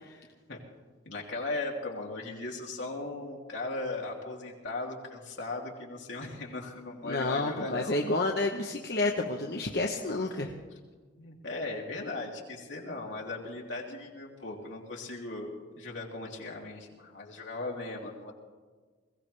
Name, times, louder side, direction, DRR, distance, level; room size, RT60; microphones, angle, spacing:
voice 1, 1.0-8.0 10.7-10.8 11.1-18.3, left 2 dB, 80° left, -1 dB, 2.8 m, -38 dB
voice 2, 7.1-10.5, left 2 dB, 55° left, 1 dB, 0.9 m, -29 dB
21.0 x 16.5 x 3.3 m, 1.4 s
head